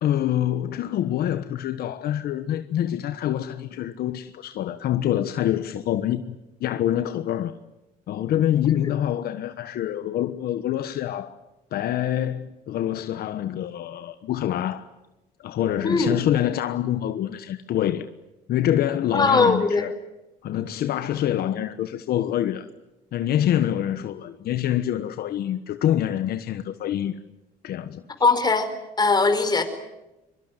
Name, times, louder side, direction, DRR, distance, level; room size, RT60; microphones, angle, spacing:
voice 1, 0.0-7.5 8.1-11.3 11.7-14.9 15.4-18.1 18.5-19.9 20.4-22.7 23.1-27.2 27.6-28.0, left 11 dB, 65° left, 1.3 m, -26 dB
voice 2, 15.8-16.2 19.1-19.9 28.2-28.7 29.0-29.6, left 3 dB, 25° left, 4.6 m, -20 dB
24.5 x 24.0 x 9.2 m
cardioid pair, 110°, 17 cm